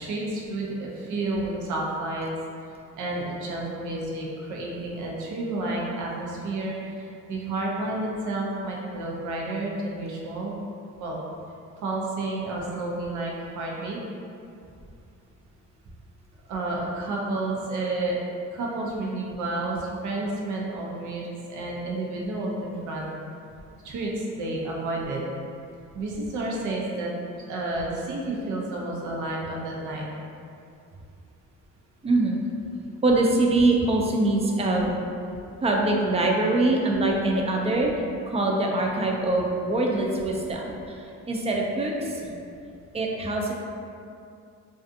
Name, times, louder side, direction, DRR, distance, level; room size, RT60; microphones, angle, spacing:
voice 1, 0.0-2.3 3.0-10.5 11.0-11.2 11.8-14.0 16.5-18.2 18.5-23.1 23.8-25.2 25.9-27.1 27.5-30.1, right 2 dB, 75° right, -3 dB, 0.6 m, -30 dB
voice 2, 32.0-32.4 33.0-34.9 35.6-37.9 38.3-42.3 42.9-43.5, right 2 dB, 20° right, -1 dB, 0.3 m, -23 dB
2.4 x 2.4 x 2.6 m, 2.5 s
cardioid pair, 90°, 30 cm